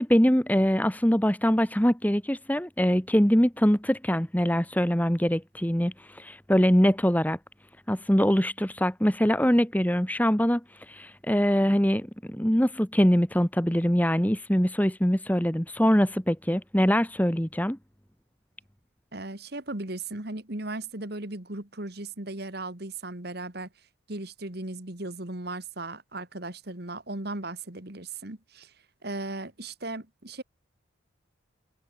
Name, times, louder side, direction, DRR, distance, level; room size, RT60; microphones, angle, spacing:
voice 1, 0.0-7.4 7.9-17.8, equal, 10° left, 1.7 m, -23 dB
voice 2, 19.1-23.7 24.1-28.7 29.0-30.4, right 2 dB, 50° right, 2.3 m, -37 dB
head